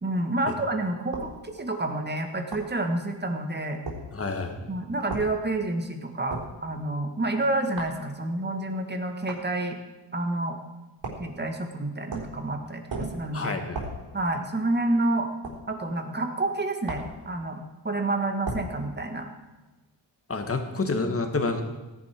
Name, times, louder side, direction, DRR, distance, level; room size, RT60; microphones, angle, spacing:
voice 1, 0.0-3.8 4.7-9.8 10.1-10.6 11.2-13.6 14.1-15.3 15.7-19.3, right 2 dB, 20° right, 4 dB, 1.8 m, -29 dB
sound 1, 1.1-1.3 2.5-2.7 3.9-4.0 5.1-5.3 6.3-6.5 7.8-8.0 9.3-9.5 11.0-11.3 12.1-12.4 12.9-13.2 13.7-14.0 15.4-15.6 16.9-17.2 18.4-18.7, right 2 dB, 70° right, 3.9 m, -34 dB
voice 2, 4.1-4.7 13.3-13.8 20.3-21.6, left 3 dB, 30° left, 5 dB, 1.7 m, -28 dB
17.5 x 11.0 x 4.6 m, 1.1 s
wide cardioid pair, 125°, 45 cm